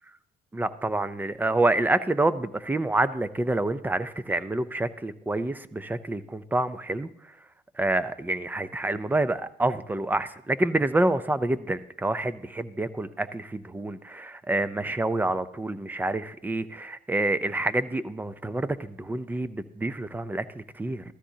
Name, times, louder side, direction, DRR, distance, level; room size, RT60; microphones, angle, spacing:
voice 1, 0.5-7.1 7.8-21.1, right 2 dB, 10° right, 14 dB, 0.5 m, -27 dB
15.0 x 13.0 x 2.8 m, 0.69 s
cardioid pair, 110°, 17 cm